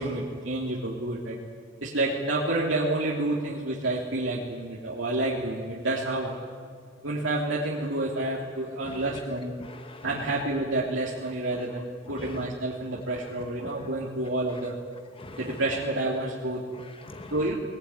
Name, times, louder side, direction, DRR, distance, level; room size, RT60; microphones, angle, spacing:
voice 1, 0.0-1.4 1.8-6.4 7.0-9.6 10.0-14.7 15.3-16.6 17.3-17.5, right 2 dB, 75° right, -4 dB, 3.1 m, -29 dB
voice 2, 8.8-9.2 9.6-10.4 11.5-11.8 12.1-12.5 12.9-13.9 15.2-15.6 16.7-17.5, left 2 dB, 30° left, 8 dB, 0.8 m, -43 dB
22.0 x 19.5 x 9.9 m, 2.1 s
head